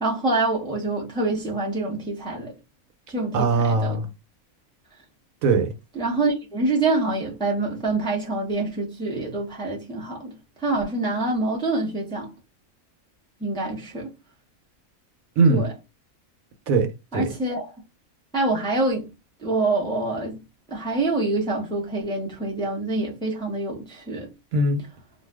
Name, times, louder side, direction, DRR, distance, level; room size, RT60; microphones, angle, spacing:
voice 1, 0.0-2.5 3.1-4.0 5.9-12.3 13.4-14.1 15.5-15.7 17.1-17.7 18.3-19.1 19.4-20.4 20.7-24.3, right 2 dB, 5° left, 0.7 m, -26 dB
voice 2, 3.3-4.1 5.4-5.7 15.4-15.7 16.7-17.3 24.5-24.8, right 3 dB, 75° right, 1.1 m, -20 dB
2.6 x 2.2 x 3.4 m
omnidirectional pair, 1.5 m